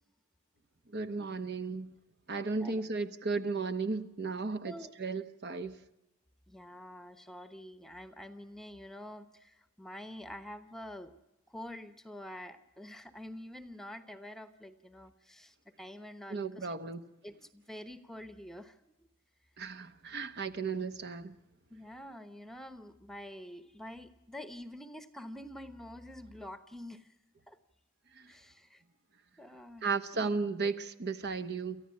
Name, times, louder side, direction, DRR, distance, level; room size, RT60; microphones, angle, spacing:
voice 1, 0.9-1.9 2.3-4.7 5.0-5.7 16.3-17.0 19.6-21.3 29.8-31.8, right 4 dB, 50° right, 1.1 m, -34 dB
voice 2, 6.5-11.1 11.5-16.7 17.2-18.8 21.7-27.1 27.5-27.6 28.3-28.8 29.4-30.4, left 1 dB, ahead, 1.1 m, -47 dB
29.0 x 14.5 x 8.5 m
head